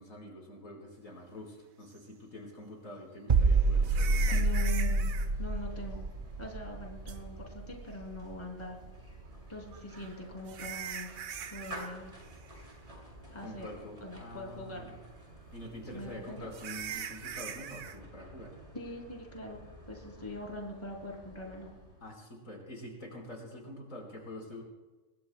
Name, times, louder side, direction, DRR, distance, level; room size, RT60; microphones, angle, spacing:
voice 1, 0.0-4.5 13.4-15.0 15.5-18.6 22.0-24.6, left 1 dB, 75° left, -1 dB, 4.9 m, -46 dB
sound 1, 2.0-2.1 3.8-5.3 7.1-7.2 9.7-11.9 12.2-12.5 12.9-13.0 13.6-13.7 16.5-18.0, right 8 dB, 75° right, 1.3 m, -41 dB
sound 2, 3.3-9.0 9.3-9.5, right 3 dB, 40° right, 1.0 m, -29 dB
sound 3, 3.6-22.2, right 1 dB, 25° right, 6.5 m, -52 dB
voice 2, 4.3-5.1 5.4-6.0 6.4-8.8 9.5-11.1 11.5-12.1 13.3-14.9 15.9-16.5 18.7-19.6 19.9-21.7, left 1 dB, 20° left, 0 dB, 3.0 m, -42 dB
26.5 x 21.0 x 2.2 m, 1.2 s
omnidirectional pair, 1.5 m